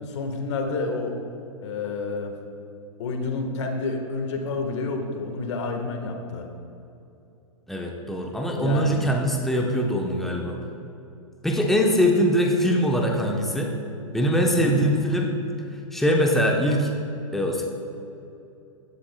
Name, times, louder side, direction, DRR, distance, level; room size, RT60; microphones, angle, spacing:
voice 1, 0.0-1.2 1.6-2.3 3.0-6.5 8.6-9.1 14.5-14.9, left 3 dB, 55° left, 4 dB, 1.5 m, -29 dB
voice 2, 7.7-10.6 11.4-13.7 14.1-15.3 15.9-16.9 17.3-17.6, equal, ahead, 0 dB, 1.0 m, -22 dB
16.0 x 11.0 x 2.3 m, 2.8 s
figure-of-eight pair, 110°, 18 cm